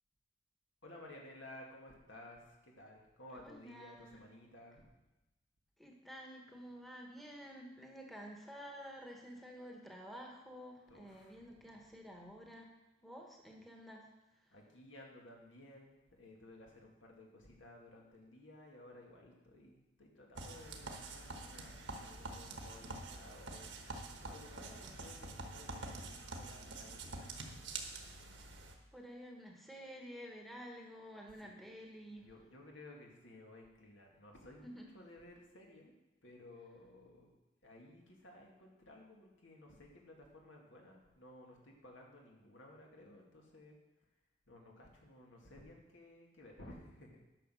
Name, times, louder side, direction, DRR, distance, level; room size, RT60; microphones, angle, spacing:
voice 1, 0.8-4.8 10.9-11.4 14.5-23.7 24.2-27.7 31.4-31.6 32.1-35.9 36.2-37.3 37.6-43.8 44.5-47.2, left 1 dB, 85° left, -1 dB, 2.1 m, -56 dB
voice 2, 3.3-4.2 5.8-12.7 13.0-14.1 14.4-14.5 28.9-32.3 34.6-34.9 46.6-46.7, equal, ahead, 0 dB, 1.1 m, -51 dB
sound 1, 20.3-28.7, right 3 dB, 80° right, 1.3 m, -47 dB
10.0 x 6.1 x 6.2 m, 1.0 s
head